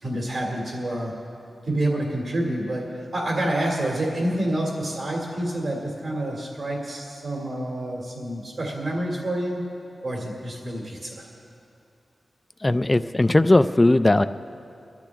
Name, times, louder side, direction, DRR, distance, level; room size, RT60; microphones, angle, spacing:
voice 1, 0.0-1.1 1.6-9.6 10.0-11.2, right 1 dB, 60° right, -1 dB, 2.5 m, -28 dB
voice 2, 12.6-14.2, left 2 dB, 20° left, 11 dB, 0.3 m, -18 dB
23.0 x 12.0 x 3.5 m, 2.6 s
wide cardioid pair, 125°, 0 cm